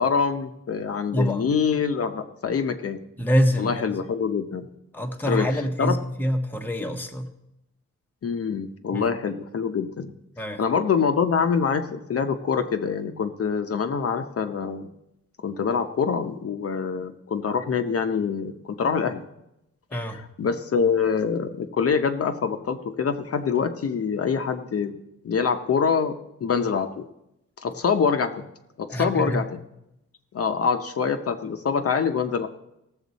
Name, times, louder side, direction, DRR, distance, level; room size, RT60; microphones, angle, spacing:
voice 1, 0.0-3.0 3.6-4.7 5.3-6.0 8.2-10.1 10.6-14.9 15.4-19.3 19.9-24.9 25.2-26.1 26.4-27.0 27.6-28.5 28.8-29.5 30.3-32.5, left 6 dB, 50° left, 6 dB, 0.7 m, -25 dB
voice 2, 1.1-1.4 3.2-3.8 4.9-7.3 8.9-9.1 10.4-10.6 19.9-20.2 28.9-29.4, equal, 5° left, 4 dB, 0.8 m, -25 dB
17.5 x 7.2 x 4.1 m, 0.86 s
wide cardioid pair, 140°, 30 cm